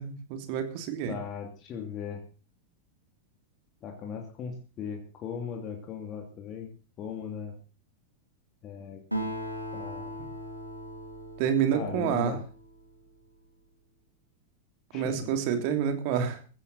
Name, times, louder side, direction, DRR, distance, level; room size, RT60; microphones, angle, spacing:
voice 1, 0.0-1.2 11.4-12.4 14.9-16.4, right 8 dB, 45° right, 7 dB, 3.0 m, -28 dB
voice 2, 1.1-2.2 3.8-6.7 7.0-7.5 8.6-9.0 9.7-10.1 11.7-12.4 14.9-15.4, left 7 dB, 30° left, 2 dB, 2.7 m, -38 dB
Acoustic guitar, 9.1-12.9, equal, 90° right, 3.2 m, -38 dB
16.0 x 14.5 x 4.3 m, 0.36 s
figure-of-eight pair, 90°, 0 cm